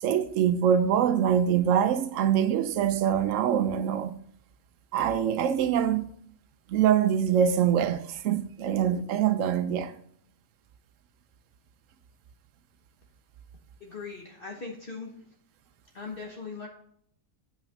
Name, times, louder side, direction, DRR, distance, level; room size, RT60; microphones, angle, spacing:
voice 1, 0.0-4.1 4.9-6.0 6.7-9.9, right 9 dB, 85° right, 1.0 m, -24 dB
voice 2, 13.8-15.1 15.9-16.7, left 4 dB, 45° left, 1.3 m, -39 dB
9.7 x 5.8 x 4.1 m
omnidirectional pair, 1.3 m